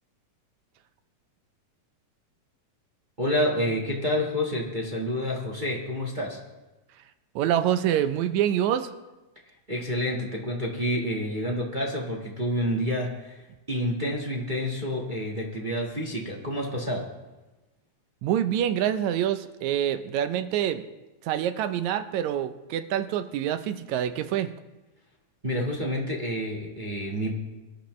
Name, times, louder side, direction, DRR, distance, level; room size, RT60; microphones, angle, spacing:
voice 1, 3.2-6.4 9.7-13.4 13.7-17.1 25.4-27.3, equal, 40° right, -2 dB, 0.7 m, -28 dB
voice 2, 7.4-8.9 18.2-20.8 21.2-24.5, right 10 dB, 75° right, 10 dB, 1.9 m, -26 dB
23.5 x 11.5 x 3.1 m, 1.1 s
omnidirectional pair, 3.5 m